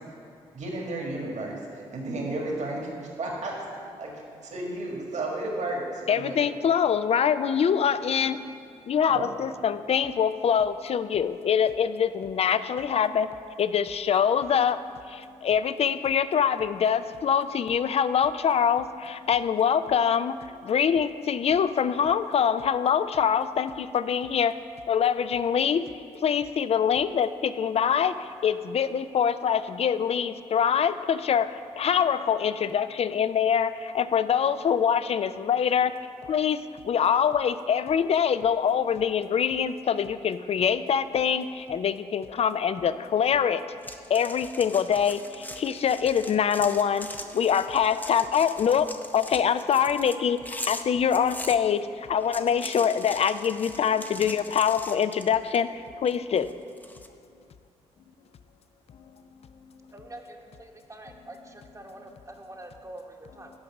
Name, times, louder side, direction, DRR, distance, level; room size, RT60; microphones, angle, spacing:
voice 1, 0.5-2.9 3.2-3.5 4.0-4.1 4.4-6.4 9.1-9.3, right 2 dB, 60° right, -1 dB, 1.7 m, -32 dB
voice 2, 6.1-8.4 8.9-13.3 13.6-14.8 15.4-20.3 20.7-24.5 24.9-25.8 26.2-28.1 28.4-31.5 31.8-35.9 36.3-36.6 36.9-43.6 44.1-45.2 45.6-47.1 47.3-48.9 49.1-50.4 50.7-51.8 52.1-55.7 56.0-56.5, left 8 dB, 50° left, 14 dB, 0.4 m, -24 dB
sound 1, 43.8-51.6 52.1-55.7 56.0-57.1, left 1 dB, 10° left, 0.6 m, -41 dB
voice 3, 59.9-63.5, right 1 dB, 20° right, 2 dB, 1.0 m, -45 dB
8.7 x 5.2 x 5.9 m, 2.4 s
hypercardioid pair, 40°, 14 cm